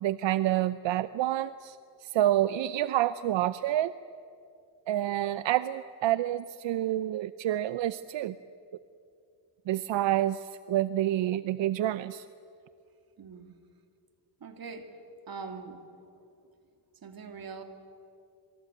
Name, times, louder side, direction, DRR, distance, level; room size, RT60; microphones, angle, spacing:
voice 1, 0.0-1.8 2.0-3.9 4.9-8.3 9.7-12.2, right 13 dB, 85° right, 14 dB, 0.7 m, -28 dB
voice 2, 13.2-13.5 14.4-14.9 15.3-15.8 17.0-17.6, right 5 dB, 55° right, 6 dB, 3.0 m, -42 dB
27.0 x 24.0 x 9.1 m, 2.5 s
cardioid pair, 105°, 43 cm